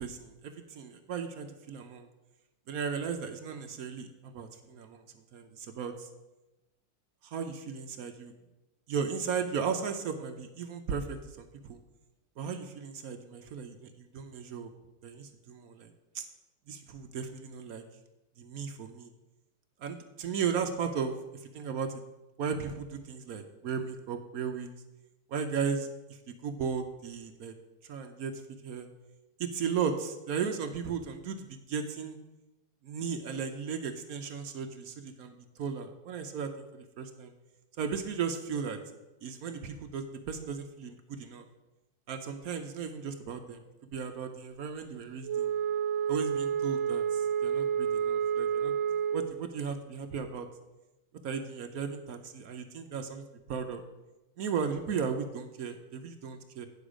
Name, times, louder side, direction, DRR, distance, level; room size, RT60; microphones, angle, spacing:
voice 1, 0.0-2.1 2.7-5.0 5.3-6.1 7.2-8.3 8.9-11.8 12.4-14.7 15.0-15.9 16.1-16.2 16.7-17.8 18.4-19.1 19.8-22.0 22.4-24.7 25.3-27.5 27.9-28.3 28.6-28.9 29.4-32.2 32.8-37.3 37.8-38.8 39.2-41.5 42.1-43.6 43.9-45.5 46.1-48.7 49.1-50.5 51.2-53.2 53.5-53.8 54.4-56.7, right 6 dB, 65° right, 7 dB, 0.9 m, -36 dB
Wind instrument woodwind instrument, 45.2-49.4, right 8 dB, 90° right, 1.4 m, -29 dB
9.5 x 6.7 x 5.0 m, 1.0 s
omnidirectional pair, 2.1 m